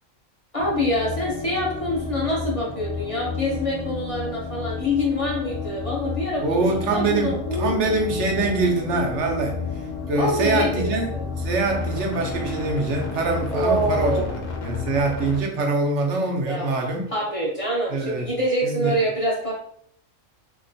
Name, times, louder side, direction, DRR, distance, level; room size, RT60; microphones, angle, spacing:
voice 1, 0.5-7.7 10.1-11.2 13.5-14.3 16.4-16.7 17.1-19.5, left 1 dB, 35° left, -5 dB, 0.7 m, -25 dB
sound 1, 0.6-15.4, left 4 dB, 80° left, 1.0 m, -31 dB
voice 2, 6.4-9.6 10.1-11.1 11.4-14.2 14.6-17.1 17.9-18.3 18.6-18.9, right 3 dB, 70° right, 2 dB, 1.0 m, -24 dB
3.1 x 2.9 x 2.6 m, 0.66 s
omnidirectional pair, 1.3 m